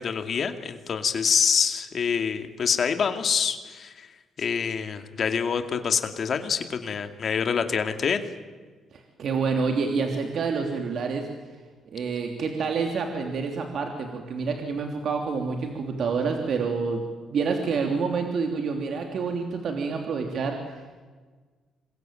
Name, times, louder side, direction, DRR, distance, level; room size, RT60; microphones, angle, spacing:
voice 1, 0.0-4.1 4.4-8.2, left 6 dB, 50° left, 7 dB, 2.3 m, -26 dB
voice 2, 8.9-11.3 11.9-17.0 17.3-21.0, right 5 dB, 60° right, 3 dB, 3.2 m, -28 dB
27.0 x 22.5 x 9.1 m, 1.4 s
cardioid pair, 90°, 0 cm